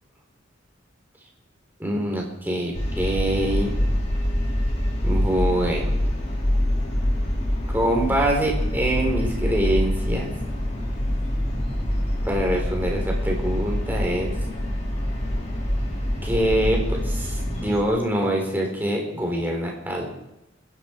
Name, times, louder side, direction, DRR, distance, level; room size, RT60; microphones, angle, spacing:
voice 1, 1.8-3.7 5.0-5.9 7.7-10.3 12.2-14.3 16.2-20.1, right 1 dB, 10° right, 0 dB, 3.7 m, -24 dB
sound 1, 2.7-17.8, equal, 35° left, 3.3 m, -25 dB
27.0 x 10.5 x 4.5 m, 0.90 s
head